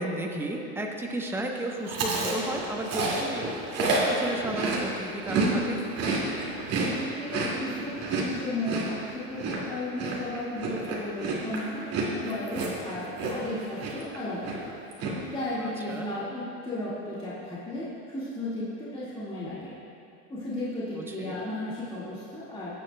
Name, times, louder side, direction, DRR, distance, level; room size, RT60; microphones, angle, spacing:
voice 1, 0.0-5.8 15.6-16.1 20.9-21.4, right 1 dB, 5° right, 1 dB, 0.9 m, -33 dB
Chewing mastication, 1.9-5.5 5.8-13.5 13.8-14.2 14.4-15.1, right 3 dB, 40° right, 2.2 m, -29 dB
voice 2, 6.8-11.9 12.2-14.5 15.3-19.7 20.3-22.7, left 1 dB, 15° left, -9 dB, 1.8 m, -34 dB
17.0 x 8.5 x 2.2 m, 2.8 s
supercardioid pair, 125°, 36 cm